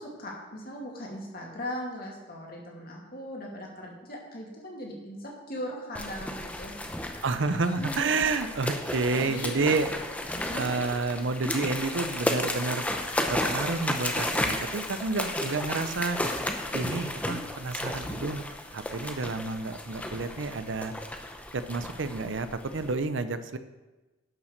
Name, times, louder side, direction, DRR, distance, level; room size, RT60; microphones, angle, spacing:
voice 1, 0.0-6.7 7.7-8.1 9.1-9.5 10.3-10.7, equal, 50° left, -2 dB, 2.6 m, -39 dB
sound 1, 5.9-22.9, left 1 dB, 5° left, 0.7 m, -33 dB
voice 2, 7.2-9.9 10.5-12.8 13.3-16.2 16.7-18.4 18.7-20.9 21.5-23.6, right 3 dB, 65° right, 11 dB, 0.7 m, -30 dB
11.0 x 5.9 x 6.5 m, 1.1 s
head